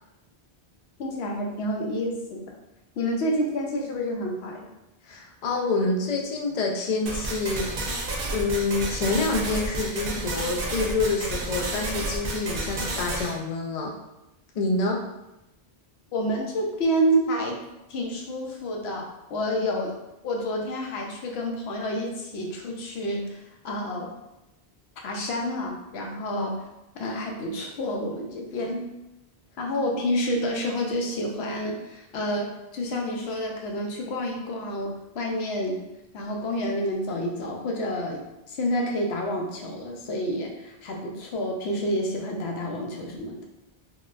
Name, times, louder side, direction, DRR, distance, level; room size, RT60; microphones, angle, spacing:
voice 1, 1.0-2.4 3.0-4.7 16.1-17.6 17.9-20.0 20.2-24.2 25.0-26.6 27.0-28.9 29.6-35.8 36.1-43.4, equal, 85° left, 1 dB, 0.8 m, -29 dB
voice 2, 5.1-7.7 8.3-13.9 14.5-15.0, left 3 dB, 55° left, 1 dB, 0.5 m, -27 dB
sound 1, 7.1-13.3, right 2 dB, 65° right, 0.8 m, -31 dB
3.7 x 2.1 x 2.4 m, 0.93 s
omnidirectional pair, 1.1 m